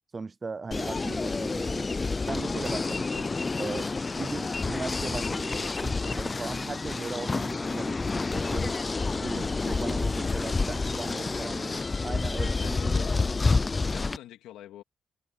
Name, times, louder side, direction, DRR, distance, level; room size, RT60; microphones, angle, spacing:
voice 1, 0.1-1.9 2.2-3.9 4.2-8.8 9.2-13.2, right 4 dB, 30° right, 0.6 m, -38 dB
sound 1, 0.7-14.2, left 3 dB, 25° left, 0.4 m, -29 dB
voice 2, 12.6-13.3 13.7-14.8, left 13 dB, 90° left, 2.7 m, -45 dB
cardioid pair, 90°, 0 cm